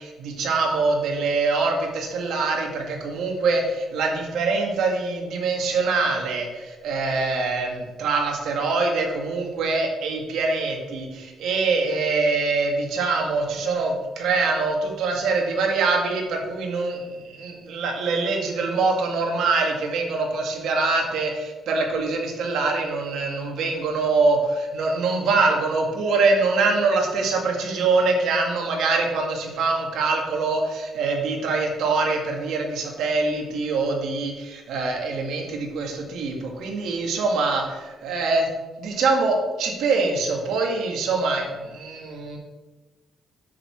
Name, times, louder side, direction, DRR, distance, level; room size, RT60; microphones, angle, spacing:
voice 1, 0.0-38.5 38.8-42.4, right 3 dB, 80° right, 1 dB, 2.2 m, -24 dB
7.5 x 6.8 x 6.1 m, 1.2 s
cardioid pair, 90°, 0 cm